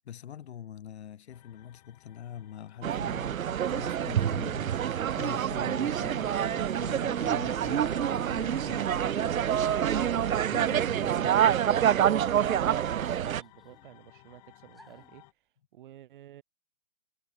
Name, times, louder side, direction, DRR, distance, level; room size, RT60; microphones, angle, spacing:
voice 1, 0.0-9.2 10.5-11.4, left 10 dB, 40° left, 2.1 m, -44 dB
sound 1, 1.3-15.3, left 18 dB, 25° left, 2.3 m, -54 dB
sound 2, 2.8-13.4, right 9 dB, 60° right, 0.6 m, -27 dB
sound 3, 5.7-6.1 6.8-7.0 8.0-8.5 9.8-10.3 10.7-10.8 11.6-12.1 13.0-13.9 14.7-15.1, equal, ahead, 1.1 m, -55 dB
voice 2, 8.6-11.6 12.0-15.3 15.7-16.4, right 13 dB, 30° right, 2.0 m, -51 dB
figure-of-eight pair, 145°, 48 cm